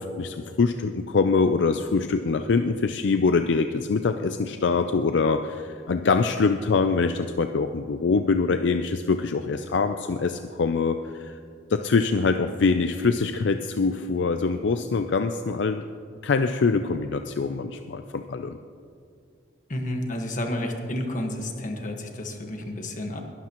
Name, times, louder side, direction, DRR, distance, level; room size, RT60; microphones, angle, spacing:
voice 1, 0.0-11.4 11.7-15.9 16.2-18.6, left 4 dB, 65° left, 8 dB, 0.4 m, -24 dB
voice 2, 19.7-23.2, left 1 dB, 45° left, 3 dB, 1.5 m, -31 dB
21.0 x 12.0 x 3.0 m, 2.3 s
head